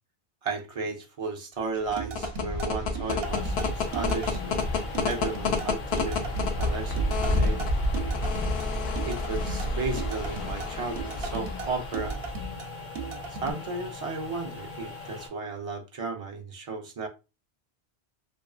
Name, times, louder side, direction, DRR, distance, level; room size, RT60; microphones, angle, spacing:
voice 1, 0.4-7.7 9.0-12.2 13.3-17.1, right 4 dB, 50° right, 0.4 m, -34 dB
sound 1, 1.8-12.5, left 2 dB, 85° left, 0.9 m, -29 dB
sound 2, 2.0-13.5, right 3 dB, 70° right, 0.8 m, -37 dB
sound 3, 3.2-15.3, left 4 dB, 50° left, 1.3 m, -41 dB
2.7 x 2.4 x 2.3 m
omnidirectional pair, 1.1 m